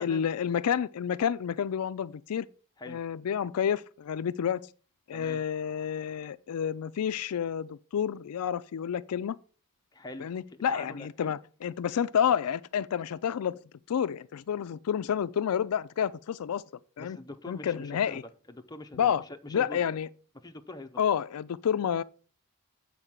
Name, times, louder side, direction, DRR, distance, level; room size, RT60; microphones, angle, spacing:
voice 1, 0.0-2.5 2.9-4.7 5.1-9.4 10.2-13.6 13.9-16.6 17.0-17.2 17.5-18.2 19.0-19.2 19.5-20.1 21.0-22.0, left 8 dB, 75° left, 0.4 m, -29 dB
voice 2, 5.1-5.4 9.9-11.4 17.0-19.8 20.3-21.0, left 2 dB, 20° left, 0.7 m, -44 dB
8.0 x 4.6 x 7.3 m
head